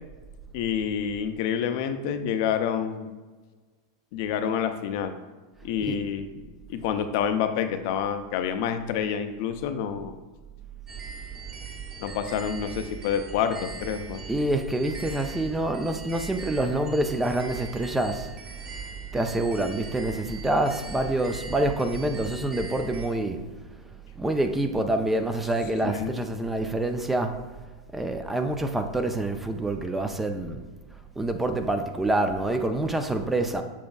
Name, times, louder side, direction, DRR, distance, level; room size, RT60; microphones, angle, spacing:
voice 1, 0.5-3.1 4.1-5.2 5.6-10.2 12.0-14.2 25.8-26.1, left 8 dB, 55° left, 8 dB, 0.5 m, -28 dB
sound 1, 10.9-23.1, right 4 dB, 25° right, 1.5 m, -40 dB
voice 2, 14.3-18.3 19.1-23.4 24.2-27.3 27.9-30.6 31.2-33.6, right 1 dB, 10° right, 6 dB, 0.5 m, -26 dB
7.3 x 6.8 x 2.3 m, 1.3 s
figure-of-eight pair, 95°, 2 cm